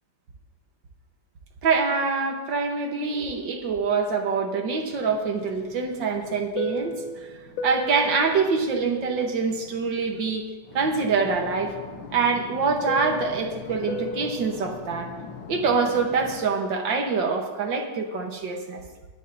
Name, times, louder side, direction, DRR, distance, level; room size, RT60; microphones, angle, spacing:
voice 1, 1.6-7.4 7.6-10.5 10.7-11.7 12.1-15.1 15.5-18.8, right 4 dB, 70° right, 3 dB, 2.0 m, -25 dB
Fixed-wing aircraft airplane, 5.0-10.3 10.7-16.5, left 2 dB, 85° left, 1.8 m, -36 dB
21.0 x 10.0 x 2.8 m, 1.3 s
omnidirectional pair, 2.1 m